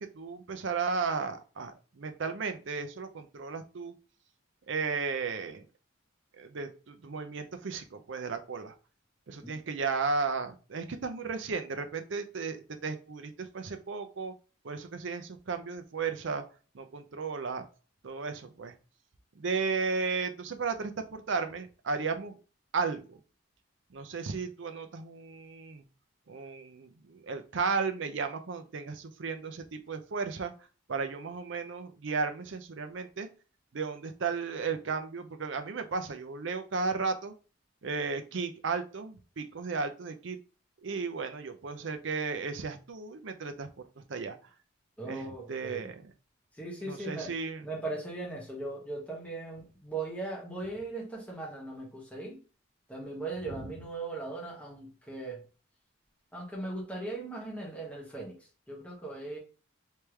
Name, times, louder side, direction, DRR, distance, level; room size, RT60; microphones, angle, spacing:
voice 1, 0.0-3.9 4.7-5.6 6.4-8.7 9.3-12.6 12.8-14.3 14.6-16.4 16.7-17.6 18.0-18.7 19.4-22.3 22.7-23.2 23.9-25.8 26.3-30.5 30.9-33.3 33.7-37.3 37.8-40.4 40.8-43.7 44.0-44.4 45.0-46.1 46.8-47.7 53.4-53.7, right 4 dB, 65° right, 8 dB, 0.5 m, -34 dB
voice 2, 45.0-45.9 46.6-47.3 47.6-52.4 52.9-55.4 56.3-58.4 58.7-59.4, right 2 dB, 5° left, -3 dB, 1.3 m, -38 dB
3.4 x 3.2 x 3.1 m, 0.36 s
head